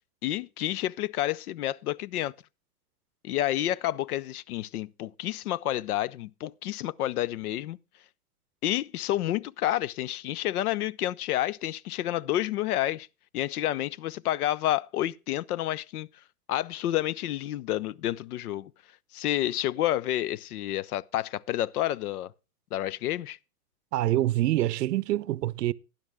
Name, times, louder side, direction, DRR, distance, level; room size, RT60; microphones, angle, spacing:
voice 1, 0.2-2.3 3.2-7.8 8.6-13.1 13.3-16.1 16.5-18.7 19.1-22.3 22.7-23.4, left 13 dB, 70° left, 0.7 m, -29 dB
voice 2, 23.9-25.7, right 14 dB, 90° right, 0.6 m, -26 dB
12.0 x 10.0 x 3.4 m
hypercardioid pair, 145°, 46 cm